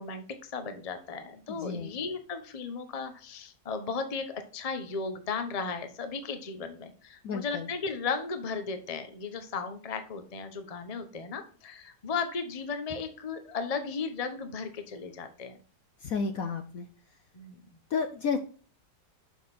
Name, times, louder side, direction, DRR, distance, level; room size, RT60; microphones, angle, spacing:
voice 1, 0.0-15.6 17.3-17.6, left 5 dB, 25° left, 8 dB, 0.8 m, -35 dB
voice 2, 1.5-2.0 7.2-7.7 16.0-16.9 17.9-18.4, left 5 dB, 60° left, 8 dB, 1.0 m, -31 dB
7.4 x 5.9 x 4.2 m, 0.40 s
omnidirectional pair, 1.9 m